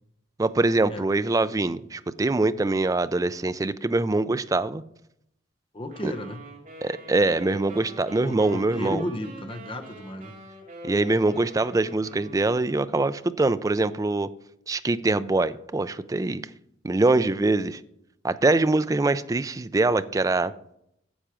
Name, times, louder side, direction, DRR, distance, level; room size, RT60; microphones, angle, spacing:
voice 1, 0.4-4.8 6.0-6.1 6.8-9.0 10.8-14.3 14.7-16.4 16.8-17.8 18.2-20.5, right 2 dB, 20° right, 13 dB, 0.3 m, -23 dB
voice 2, 5.7-6.4 8.2-10.3, left 1 dB, 30° left, 6 dB, 0.8 m, -33 dB
sound 1, 5.9-13.1, right 1 dB, 45° right, 2.5 m, -44 dB
10.0 x 7.2 x 5.0 m, 0.77 s
head